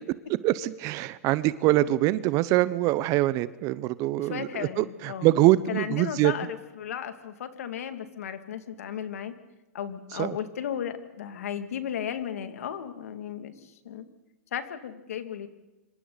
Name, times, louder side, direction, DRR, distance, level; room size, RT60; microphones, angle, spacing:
voice 1, 0.4-6.3 10.1-10.4, right 16 dB, 40° right, 16 dB, 0.8 m, -24 dB
voice 2, 4.2-5.3 5.7-9.3 9.7-14.1 14.5-15.5, left 9 dB, 75° left, 8 dB, 2.4 m, -35 dB
26.5 x 26.0 x 4.1 m, 1.0 s
hypercardioid pair, 115°, 8 cm